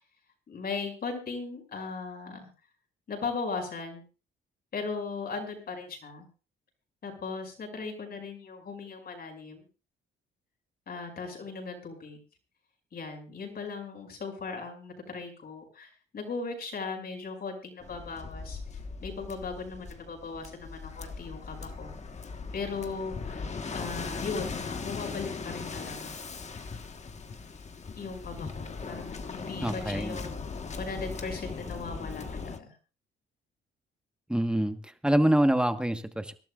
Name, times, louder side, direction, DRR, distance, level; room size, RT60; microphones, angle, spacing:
voice 1, 0.5-2.5 3.1-4.0 4.7-6.3 7.0-9.6 10.9-12.2 12.9-18.6 19.0-21.9 22.5-23.4 23.7-26.2 28.0-30.4 30.8-32.8, left 4 dB, 50° left, 3 dB, 5.6 m, -38 dB
Waves surf, 17.8-32.6, left 4 dB, 35° left, 1.3 m, -39 dB
voice 2, 29.6-30.2 34.3-36.3, right 1 dB, 5° right, 8 dB, 1.3 m, -26 dB
25.5 x 12.0 x 2.4 m, 0.35 s
cardioid pair, 90°, 20 cm